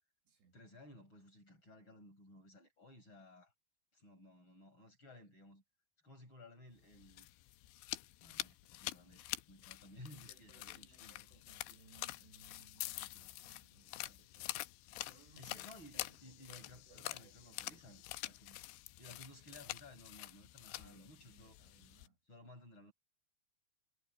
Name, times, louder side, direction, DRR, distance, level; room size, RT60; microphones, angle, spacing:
voice 1, 0.5-3.5 3.9-5.6 6.0-7.3 8.2-11.3 15.4-18.6 19.0-21.6 22.3-22.9, left 1 dB, 25° left, 7.5 m, -57 dB
sound 1, 6.9-22.1, left 18 dB, 85° left, 3.0 m, -47 dB
voice 2, 9.9-14.7 15.1-15.7 15.9-18.1 20.7-22.2, right 5 dB, 65° right, 4.8 m, -66 dB
omnidirectional pair, 5.4 m